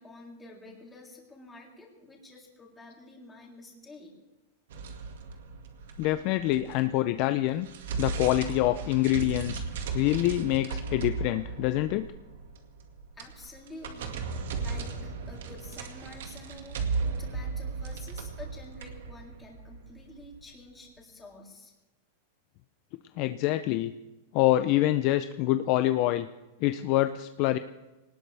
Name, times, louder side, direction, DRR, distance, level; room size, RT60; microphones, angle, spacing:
voice 1, 0.0-4.2 8.7-8.9 13.2-21.7, left 2 dB, 10° left, -2 dB, 3.5 m, -49 dB
sound 1, 4.7-7.1 7.4-20.4, right 4 dB, 80° right, 2.1 m, -36 dB
voice 2, 6.0-7.7 8.0-9.6 9.9-12.1 23.2-23.9 24.3-26.3 26.6-27.6, left 15 dB, 45° left, 10 dB, 0.5 m, -26 dB
20.5 x 19.0 x 3.4 m, 1.0 s
supercardioid pair, 150°, 0 cm